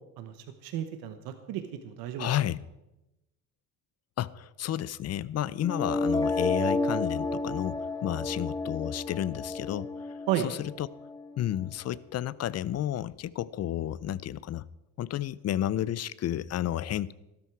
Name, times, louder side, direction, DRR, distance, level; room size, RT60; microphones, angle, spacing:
voice 1, 0.6-2.3 10.3-10.5, right 11 dB, 90° right, 8 dB, 1.2 m, -32 dB
voice 2, 2.2-2.6 4.2-10.1 10.4-10.9 11.4-14.7 15.0-17.1, left 12 dB, 45° left, 19 dB, 0.6 m, -31 dB
sound 1, 5.6-11.6, left 2 dB, 10° left, 1.1 m, -31 dB
15.0 x 13.0 x 4.7 m, 0.94 s
cardioid pair, 125°, 36 cm